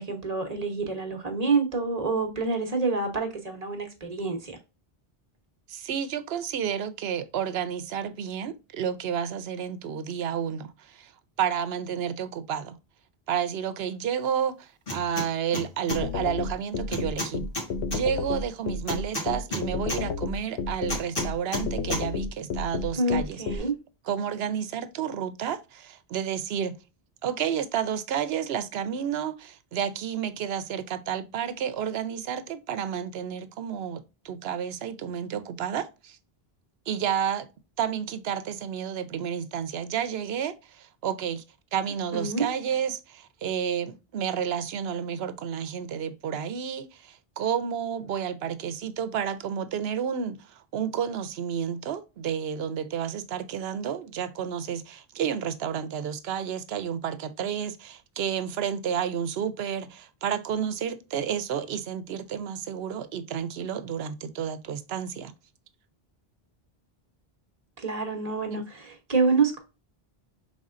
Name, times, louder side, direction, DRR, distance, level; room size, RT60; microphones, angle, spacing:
voice 1, 0.0-4.6 23.0-23.7 42.1-42.5 67.8-69.6, right 3 dB, 40° right, 1.0 m, -27 dB
voice 2, 5.7-11.1 11.4-12.8 13.3-17.4 17.9-23.6 24.1-26.8 27.2-36.2 36.9-37.5 37.8-41.4 41.7-65.3 68.5-68.6, right 8 dB, 80° right, 0.8 m, -31 dB
sound 1, 14.9-15.3 15.5-16.0 16.9-18.0 18.9-20.0 20.9-21.6 21.9-22.0, left 1 dB, 60° left, 1.7 m, -31 dB
sound 2, 15.9-23.6, left 4 dB, 85° left, 0.9 m, -30 dB
5.2 x 3.6 x 2.4 m
omnidirectional pair, 1.0 m